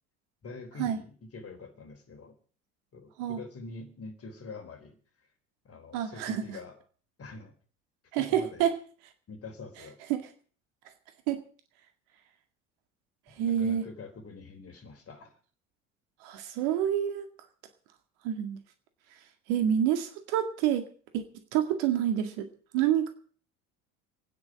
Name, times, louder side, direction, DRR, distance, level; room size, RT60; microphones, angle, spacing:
voice 1, 0.4-2.4 2.9-5.0 5.6-6.8 7.2-7.5 8.2-8.7 9.3-10.0 13.4-15.3, left 3 dB, 35° left, 7 dB, 3.7 m, -45 dB
voice 2, 5.9-6.6 8.1-8.8 10.1-10.3 11.3-11.4 13.4-13.9 16.2-17.3 18.2-18.6 19.5-20.9 21.1-21.2 21.5-22.5 22.7-23.1, right 10 dB, 60° right, 8 dB, 2.0 m, -28 dB
25.0 x 9.8 x 4.9 m, 0.42 s
figure-of-eight pair, 65°, 42 cm